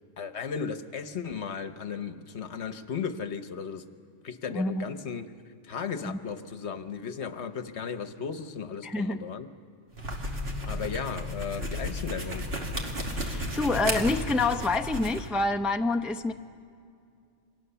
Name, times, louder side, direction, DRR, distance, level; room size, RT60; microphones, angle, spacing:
voice 1, 0.2-3.8 4.2-5.3 5.6-9.5 10.6-12.5, left 6 dB, 70° left, 9 dB, 1.3 m, -35 dB
voice 2, 4.5-4.9 6.0-6.2 8.8-9.2 13.1-16.3, left 3 dB, ahead, 6 dB, 0.5 m, -27 dB
sound 1, 9.9-15.3, equal, 55° right, 2.6 m, -33 dB
28.0 x 24.0 x 6.9 m, 2.4 s
omnidirectional pair, 1.2 m